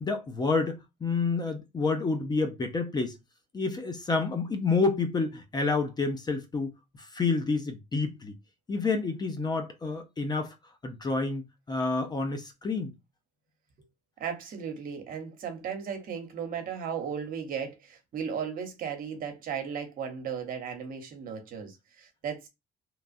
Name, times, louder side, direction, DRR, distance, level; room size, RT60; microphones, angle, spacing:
voice 1, 0.0-3.2 3.5-6.7 7.0-8.4 8.7-10.5 10.8-12.9, left 4 dB, 25° left, 0.5 m, -29 dB
voice 2, 14.2-22.5, right 7 dB, 55° right, 0.9 m, -36 dB
2.9 x 2.3 x 2.6 m
cardioid pair, 110°, 17 cm